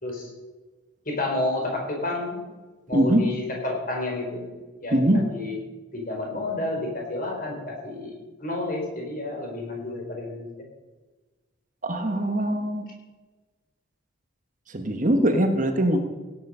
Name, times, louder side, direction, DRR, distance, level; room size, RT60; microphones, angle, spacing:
voice 1, 1.1-2.4 2.9-4.5 4.8-5.0 5.3-5.6 5.9-8.1 8.4-10.5, left 2 dB, 45° left, 0 dB, 4.3 m, -30 dB
voice 2, 2.9-3.2 4.9-5.2 11.8-12.8 14.7-16.0, right 1 dB, 40° right, 6 dB, 1.3 m, -22 dB
16.5 x 9.3 x 5.6 m, 1.2 s
head